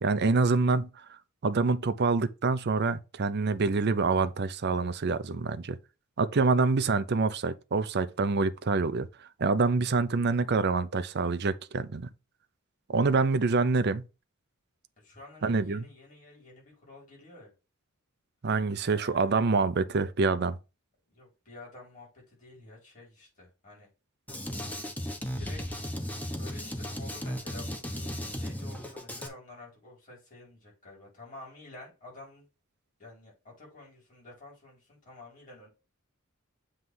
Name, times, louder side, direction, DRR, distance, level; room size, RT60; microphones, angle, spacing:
voice 1, 0.0-5.8 6.2-9.1 9.4-12.1 12.9-14.0 15.4-15.8 18.4-20.6, right 4 dB, 50° right, 0.6 m, -26 dB
voice 2, 6.2-6.5 13.0-13.3 15.0-17.5 18.8-19.4 21.1-23.9 25.4-25.9 26.3-32.5 33.0-35.7, left 2 dB, 40° left, 4.5 m, -50 dB
Drum kit, 24.3-29.3, equal, 10° left, 1.0 m, -35 dB
7.8 x 3.3 x 5.5 m
head